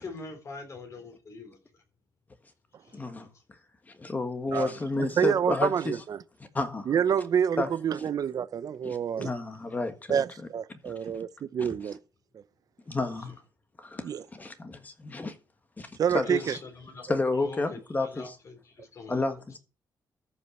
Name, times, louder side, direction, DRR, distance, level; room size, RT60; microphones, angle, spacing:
voice 1, 0.0-1.6 2.8-3.3 15.8-15.9 16.2-17.0 17.4-17.8 18.1-19.2, left 3 dB, 40° left, 3.6 m, -43 dB
voice 2, 2.9-3.3 3.9-5.9 6.5-6.9 7.6-7.7 8.0-8.1 8.8-10.2 10.8-11.1 11.6-11.7 12.9-13.3 13.8-15.4 15.8-16.5 17.0-18.4 19.1-19.6, left 2 dB, 20° left, 1.5 m, -31 dB
voice 3, 5.2-6.2 6.9-9.3 10.1-12.0 14.0-14.2 16.0-16.6, right 8 dB, 55° right, 0.7 m, -27 dB
13.5 x 5.7 x 6.1 m
cardioid pair, 140°, 8 cm